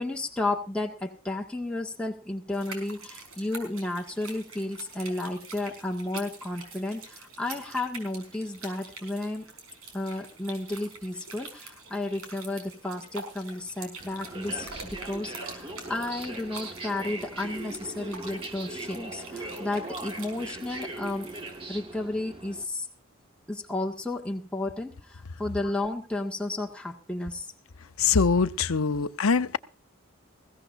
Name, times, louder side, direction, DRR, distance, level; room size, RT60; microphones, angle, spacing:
voice 1, 0.0-9.5 9.9-21.3 21.7-22.9 23.5-27.5, left 2 dB, 5° left, 1.7 m, -33 dB
sound 1, 2.5-21.6, right 3 dB, 80° right, 5.1 m, -45 dB
sound 2, 14.0-22.7, right 2 dB, 25° right, 1.5 m, -40 dB
voice 2, 28.0-29.6, left 5 dB, 85° left, 0.8 m, -23 dB
21.0 x 16.5 x 2.6 m
head